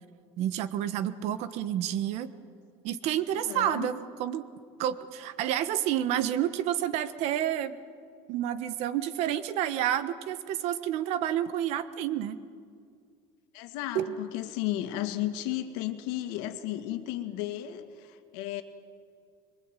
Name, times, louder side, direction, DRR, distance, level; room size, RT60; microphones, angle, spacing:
voice 1, 0.4-2.3 2.8-4.5 4.8-7.8 8.3-12.4 13.9-14.2, right 11 dB, 55° right, 13 dB, 1.3 m, -29 dB
voice 2, 3.5-3.9 13.5-18.6, left 13 dB, 90° left, 8 dB, 2.2 m, -34 dB
25.0 x 22.5 x 9.2 m, 2.2 s
cardioid pair, 170°, 13 cm